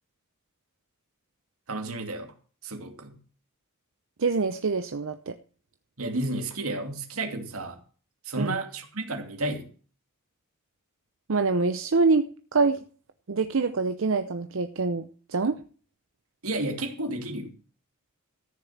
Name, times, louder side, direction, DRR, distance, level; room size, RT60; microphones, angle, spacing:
voice 1, 1.7-2.3 2.6-3.2 6.0-7.8 8.2-9.7 16.4-17.5, right 2 dB, 90° right, 5 dB, 2.5 m, -32 dB
voice 2, 4.2-5.3 8.4-8.6 11.3-12.3 12.5-12.8 13.3-15.6, right 4 dB, 65° right, 9 dB, 0.7 m, -25 dB
14.0 x 6.8 x 7.3 m, 0.43 s
head